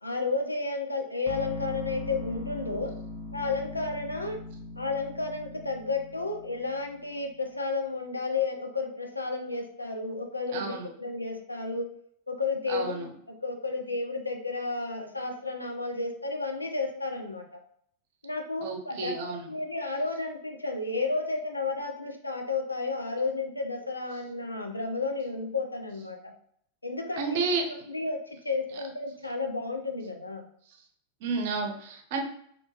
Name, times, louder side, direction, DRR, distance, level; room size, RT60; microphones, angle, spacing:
voice 1, 0.0-2.9 3.3-4.4 4.8-11.9 12.3-17.4 18.2-26.3 26.8-27.4 27.9-30.4, left 3 dB, 85° left, 3 dB, 0.4 m, -32 dB
sound 1, 1.3-7.3, left 2 dB, 30° left, 0.7 m, -40 dB
voice 2, 10.5-10.9 12.7-13.1 18.6-19.4 27.2-27.7 31.2-32.2, right 4 dB, 50° right, 3 dB, 0.5 m, -31 dB
2.6 x 2.2 x 2.8 m, 0.67 s
figure-of-eight pair, 90°, 0 cm